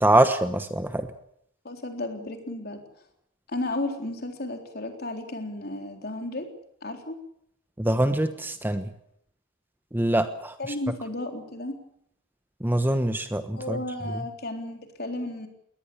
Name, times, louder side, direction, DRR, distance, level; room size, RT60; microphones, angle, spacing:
voice 1, 0.0-1.1 7.8-8.9 9.9-10.6 12.6-13.8 14.1-14.2, right 1 dB, 10° right, 9 dB, 1.1 m, -24 dB
voice 2, 1.6-2.8 3.5-6.5 6.8-7.2 10.6-11.7 13.5-15.5, left 2 dB, 50° left, 5 dB, 3.9 m, -33 dB
21.5 x 19.0 x 8.7 m, 0.71 s
head